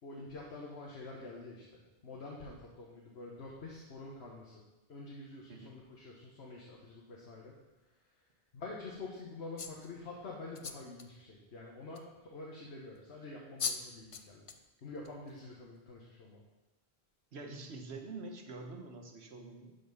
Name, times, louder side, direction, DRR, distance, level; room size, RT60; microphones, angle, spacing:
voice 1, 0.0-4.6 4.9-7.5 8.5-14.4 14.8-16.4, left 3 dB, 80° left, -3 dB, 1.5 m, -47 dB
sound 1, 9.6-9.9 10.5-11.1 11.9-12.0 13.2-13.3 13.6-13.8 14.1-14.6 15.0-15.3, left 5 dB, 40° left, 0.5 m, -38 dB
voice 2, 17.3-19.7, right 3 dB, 80° right, 4 dB, 1.3 m, -46 dB
11.5 x 4.3 x 5.5 m, 1.1 s
omnidirectional pair, 1.1 m